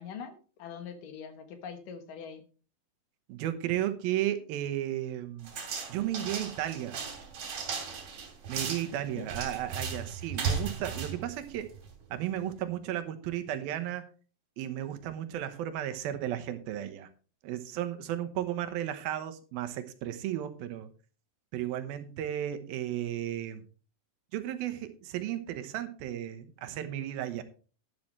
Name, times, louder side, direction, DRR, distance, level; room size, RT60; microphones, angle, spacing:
voice 1, 0.0-2.4 9.1-9.3, left 7 dB, 70° left, 8 dB, 2.9 m, -43 dB
voice 2, 3.3-5.5 5.9-7.0 8.5-11.7 12.1-14.1 14.6-17.1 17.4-20.9 21.5-23.6 24.3-27.4, right 12 dB, 85° right, 9 dB, 2.9 m, -34 dB
sound 1, 5.4-12.0, right 5 dB, 55° right, 3.6 m, -36 dB
11.5 x 11.0 x 3.2 m, 0.37 s
omnidirectional pair, 4.1 m